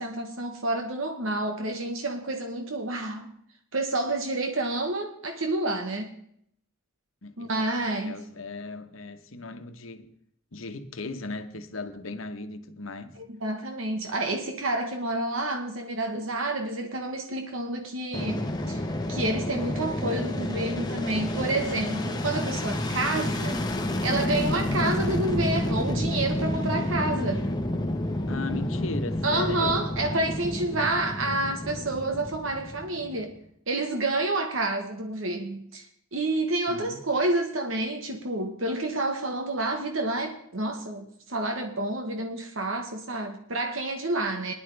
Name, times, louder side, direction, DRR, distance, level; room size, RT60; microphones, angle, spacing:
voice 1, 0.0-3.3 3.7-6.1 7.4-8.2 13.4-18.8 19.1-23.6 24.0-27.5 29.2-33.3 33.7-35.9 36.1-44.5, right 2 dB, 75° right, 1.3 m, -29 dB
voice 2, 7.2-10.1 10.5-13.2 24.6-25.0 28.3-30.0 36.7-37.0, left 3 dB, 75° left, 1.1 m, -37 dB
Fixed-wing aircraft airplane, 18.1-33.3, left 1 dB, 20° left, 1.1 m, -30 dB
19.0 x 11.0 x 3.4 m
head